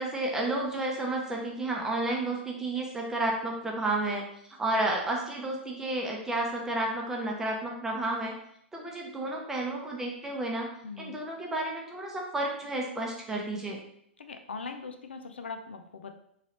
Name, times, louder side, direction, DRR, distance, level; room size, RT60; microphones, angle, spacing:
voice 1, 0.0-4.2 4.6-8.3 8.7-10.7 11.0-13.8, right 2 dB, 10° right, -1 dB, 0.7 m, -31 dB
voice 2, 10.8-11.2 14.2-16.2, left 4 dB, 70° left, 7 dB, 0.4 m, -41 dB
3.7 x 3.2 x 2.9 m, 0.71 s
figure-of-eight pair, 105°, 6 cm